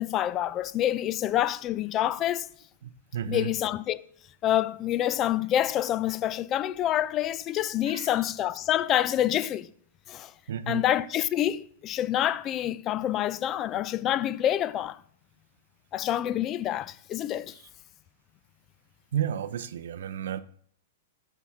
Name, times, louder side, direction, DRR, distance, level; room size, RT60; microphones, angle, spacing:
voice 1, 0.0-2.5 3.3-4.0 4.4-9.7 10.1-10.3 10.7-15.0 15.9-17.5, left 12 dB, 35° left, 0.4 m, -27 dB
voice 2, 2.8-3.5 7.9-8.3 10.5-10.8 17.5-17.7 19.1-20.4, right 9 dB, 75° right, 0.5 m, -33 dB
5.7 x 5.5 x 3.6 m
hypercardioid pair, 120°, 0 cm